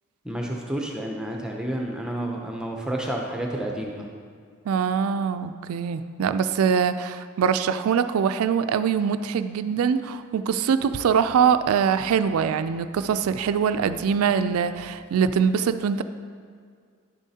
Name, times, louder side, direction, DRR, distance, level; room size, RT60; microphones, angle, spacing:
voice 1, 0.2-4.1, right 1 dB, 5° right, 0 dB, 0.5 m, -30 dB
voice 2, 4.7-16.0, right 7 dB, 85° right, 11 dB, 0.3 m, -23 dB
10.5 x 7.1 x 2.8 m, 2.1 s
head